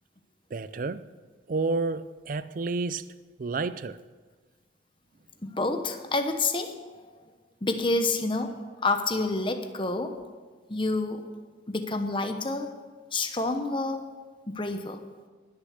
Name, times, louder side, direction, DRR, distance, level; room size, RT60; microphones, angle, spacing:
voice 1, 0.5-1.1 1.5-3.1 3.4-4.0, right 3 dB, 45° right, 0.4 m, -30 dB
voice 2, 5.4-7.0 7.6-8.5 8.8-10.1 10.7-11.2 11.7-12.7 13.1-14.0 14.5-15.0, left 2 dB, 25° left, 1.0 m, -28 dB
20.0 x 6.7 x 6.5 m
head